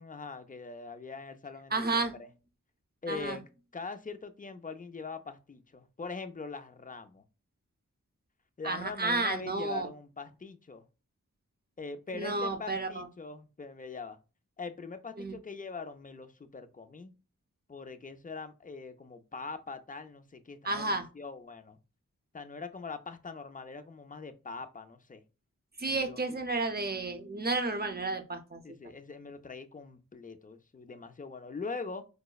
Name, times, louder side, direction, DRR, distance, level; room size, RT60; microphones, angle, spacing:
voice 1, 0.0-2.3 3.0-3.4 3.7-7.2 8.6-10.8 11.8-14.2 14.6-17.1 17.7-21.8 22.3-25.2 25.9-26.2 28.6-32.0, left 4 dB, 25° left, 0.3 m, -42 dB
voice 2, 1.7-2.2 3.1-3.4 8.6-9.9 12.1-13.0 15.2-15.3 20.6-21.1 25.8-28.6, right 3 dB, 30° right, 0.6 m, -31 dB
4.6 x 2.0 x 2.3 m
wide cardioid pair, 50°, 33 cm